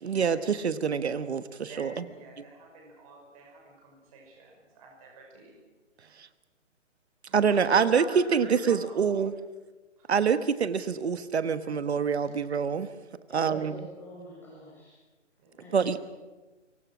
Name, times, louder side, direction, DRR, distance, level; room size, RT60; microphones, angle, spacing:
voice 1, 0.0-2.0 7.3-8.0 8.3-9.3 10.1-12.9 13.3-13.8 15.7-16.0, right 6 dB, 60° right, 13 dB, 1.3 m, -26 dB
voice 2, 1.7-5.6 6.0-6.2 7.3-7.7 7.9-9.1 10.0-10.1 15.4-15.7, right 3 dB, 30° right, -1 dB, 5.9 m, -47 dB
voice 3, 13.3-15.0 15.6-16.0, left 1 dB, 5° left, -6 dB, 7.5 m, -47 dB
24.5 x 23.5 x 6.2 m, 1.2 s
hypercardioid pair, 155°, 37 cm